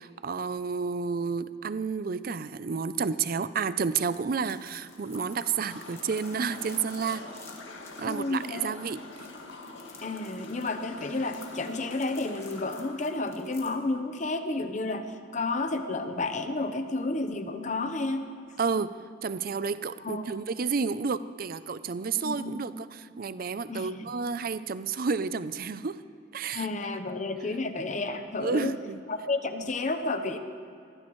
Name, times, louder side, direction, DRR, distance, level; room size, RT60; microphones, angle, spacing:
voice 1, 0.0-7.3 8.0-9.0 18.6-26.0 26.3-26.7 28.4-29.0, right 5 dB, 50° right, 14 dB, 0.5 m, -31 dB
sound 1, 4.1-13.8, left 3 dB, 15° left, 1.5 m, -52 dB
sound 2, 4.8-13.5, left 2 dB, 85° left, 1.9 m, -45 dB
voice 2, 8.0-8.7 10.0-18.3 20.0-20.3 22.2-22.5 23.7-24.0 26.5-28.7 29.1-30.4, left 2 dB, 40° left, 7 dB, 0.9 m, -31 dB
23.0 x 16.0 x 3.2 m, 2.7 s
head